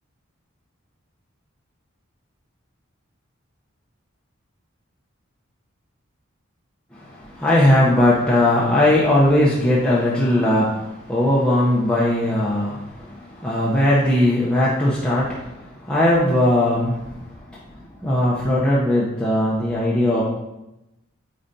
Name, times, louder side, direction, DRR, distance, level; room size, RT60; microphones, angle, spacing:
voice 1, 6.9-20.2, left 1 dB, 5° left, -7 dB, 0.7 m, -19 dB
8.6 x 4.2 x 2.7 m, 0.93 s
head